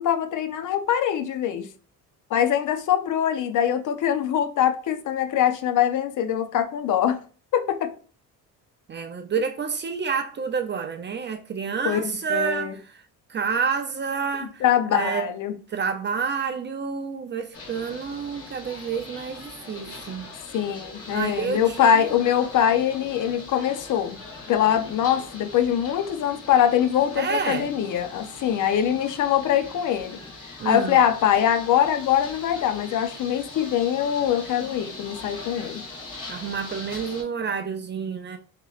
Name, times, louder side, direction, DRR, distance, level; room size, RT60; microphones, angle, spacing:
voice 1, 0.0-1.7 2.3-7.2 7.5-7.9 11.8-12.7 14.6-15.5 20.5-24.2 24.5-30.2 30.6-35.8, left 9 dB, 55° left, 0.5 m, -23 dB
voice 2, 8.9-13.0 13.3-14.6 14.9-15.3 15.7-20.3 21.1-22.1 27.2-27.7 30.6-31.0 36.3-38.4, right 6 dB, 30° right, 0.4 m, -29 dB
sound 1, 17.5-37.2, left 3 dB, 40° left, 1.3 m, -41 dB
2.9 x 2.7 x 2.3 m
cardioid pair, 90°, 37 cm